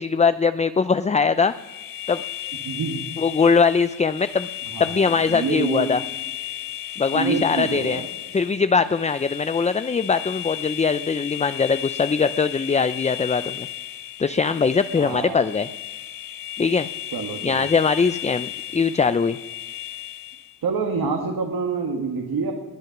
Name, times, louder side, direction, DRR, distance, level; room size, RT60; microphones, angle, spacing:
voice 1, 0.0-1.5 2.1-2.2 3.2-4.5 4.8-6.0 7.0-8.0 8.3-13.7 14.2-15.7 16.6-16.9 17.4-19.4, left 5 dB, 15° left, 13 dB, 0.4 m, -21 dB
sound 1, 1.3-20.6, left 13 dB, 55° left, 0.7 m, -35 dB
voice 2, 2.6-3.1 4.7-5.9 7.1-8.1 15.0-15.4 17.1-17.7 20.6-22.5, right 5 dB, 55° right, 2 dB, 1.9 m, -27 dB
20.5 x 9.1 x 6.0 m, 1.3 s
cardioid pair, 80°, 41 cm